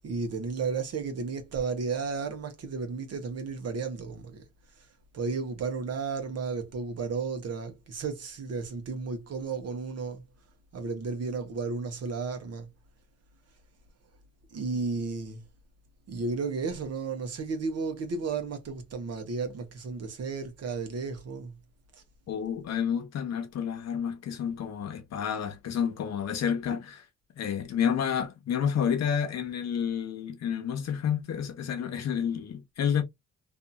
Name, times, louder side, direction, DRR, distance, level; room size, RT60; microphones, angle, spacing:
voice 1, 0.0-4.4 5.1-10.2 10.7-12.7 14.5-15.4 16.1-21.6 21.9-22.0, right 4 dB, 55° right, 1.1 m, -33 dB
voice 2, 22.3-27.0 27.4-33.0, left 8 dB, 60° left, 0.9 m, -30 dB
2.7 x 2.7 x 2.2 m
cardioid pair, 90°, 30 cm